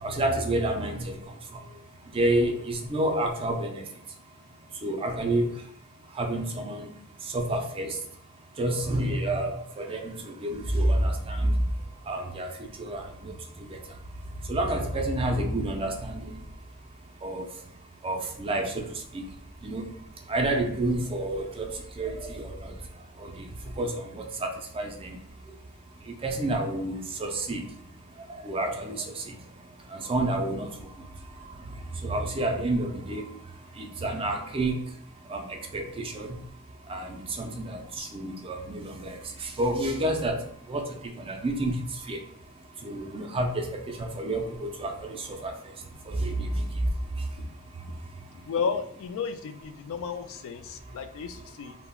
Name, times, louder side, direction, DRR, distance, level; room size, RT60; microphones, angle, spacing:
voice 1, 0.0-1.2 2.1-3.8 4.8-5.5 6.2-6.9 7.3-8.0 8.6-10.1 10.4-11.5 12.1-13.3 13.7-13.8 14.5-16.3 17.2-17.5 18.0-18.9 19.1-19.2 19.6-19.8 20.3-22.7 23.2-23.3 23.8-25.1 26.2-27.6 28.4-29.4 29.9-30.7 32.0-33.3 33.8-34.8 35.3-36.4 36.9-39.1 39.4-40.4 40.7-41.8 42.1-42.2 42.8-45.5 46.1-46.7, right 1 dB, 25° right, 3 dB, 0.4 m, -29 dB
voice 2, 48.5-51.8, left 5 dB, 65° left, 9 dB, 0.3 m, -33 dB
2.3 x 2.1 x 3.4 m, 0.67 s
head